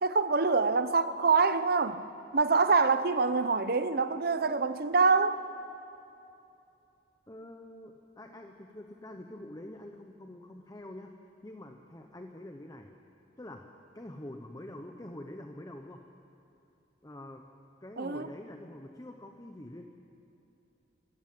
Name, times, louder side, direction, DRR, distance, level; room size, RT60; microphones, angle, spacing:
voice 1, 0.0-2.1 2.3-5.4 18.0-18.3, right 4 dB, 60° right, 12 dB, 0.9 m, -25 dB
voice 2, 7.3-11.1 11.4-12.9 13.4-13.7 13.9-16.0 17.0-17.4 17.8-19.8, left 1 dB, 20° left, 4 dB, 1.0 m, -46 dB
25.0 x 15.5 x 7.7 m, 2.8 s
head